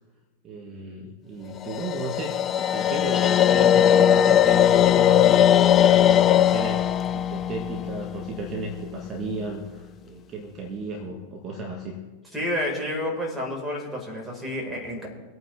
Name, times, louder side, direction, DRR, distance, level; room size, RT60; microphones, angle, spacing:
voice 1, 0.4-6.8 7.1-12.0, right 3 dB, 30° right, 1 dB, 1.8 m, -34 dB
sound 1, 1.6-8.8, left 10 dB, 30° left, 0.5 m, -19 dB
voice 2, 12.3-15.1, left 1 dB, 5° right, -2 dB, 4.8 m, -30 dB
24.5 x 9.0 x 3.5 m, 1.3 s
figure-of-eight pair, 90°, 0 cm